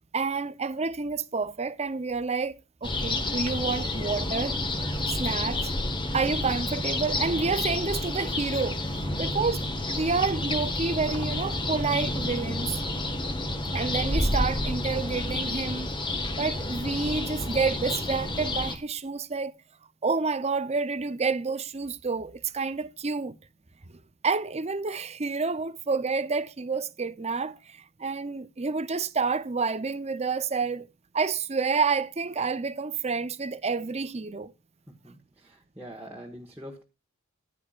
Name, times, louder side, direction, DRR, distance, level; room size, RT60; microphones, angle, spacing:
voice 1, 0.1-4.5 5.2-5.7 6.1-12.7 13.7-15.9 16.4-19.5 20.0-23.4 24.2-30.9 31.1-34.5, right 4 dB, 30° right, 0.7 m, -29 dB
sound 1, 2.8-18.8, left 1 dB, 25° left, 1.6 m, -30 dB
voice 2, 9.1-9.4 34.9-36.8, equal, 10° right, 1.5 m, -44 dB
14.5 x 10.5 x 2.5 m
head